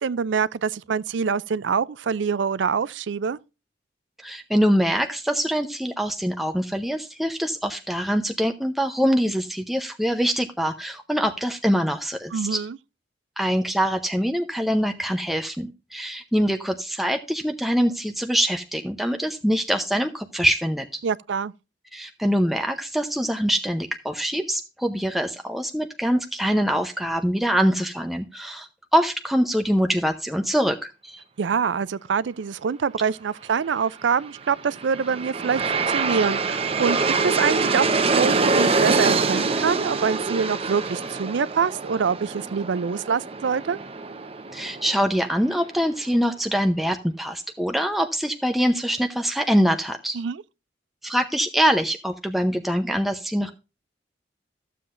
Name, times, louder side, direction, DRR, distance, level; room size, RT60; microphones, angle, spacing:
voice 1, 0.0-3.4 12.3-12.8 21.0-21.5 31.4-43.8 50.1-50.4, right 6 dB, 75° right, 0.4 m, -25 dB
voice 2, 4.2-12.6 13.4-21.0 21.9-31.2 44.5-50.2 51.0-53.5, equal, ahead, 0.7 m, -24 dB
Aircraft, 34.5-45.6, right 4 dB, 30° right, 0.9 m, -25 dB
14.0 x 7.5 x 2.5 m
head